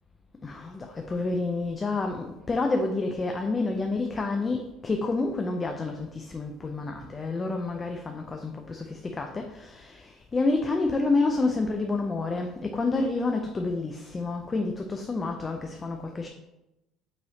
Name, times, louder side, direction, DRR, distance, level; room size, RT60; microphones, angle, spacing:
voice 1, 0.4-16.3, left 3 dB, 25° left, 4 dB, 0.4 m, -29 dB
5.4 x 3.0 x 2.8 m, 0.96 s
supercardioid pair, 90°, 0 cm